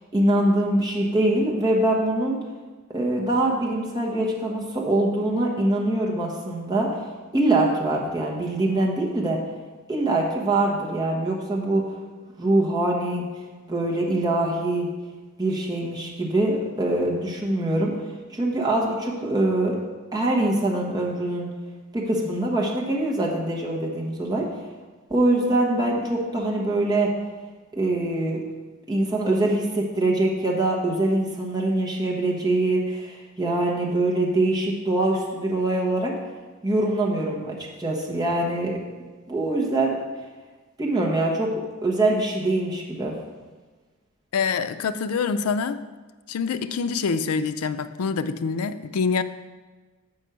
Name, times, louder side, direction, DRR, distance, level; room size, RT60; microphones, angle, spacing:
voice 1, 0.1-2.4 2.9-7.0 7.3-9.4 9.9-11.8 12.4-13.3 13.7-14.9 15.4-18.0 18.3-19.8 20.1-21.5 21.9-24.5 25.1-27.1 27.7-28.4 28.9-36.1 36.6-38.8 39.3-40.0 40.8-43.1, right 2 dB, 20° right, -3 dB, 1.2 m, -23 dB
voice 2, 44.3-45.8 46.3-49.2, left 5 dB, 80° left, 10 dB, 0.4 m, -25 dB
6.3 x 5.2 x 6.8 m, 1.3 s
head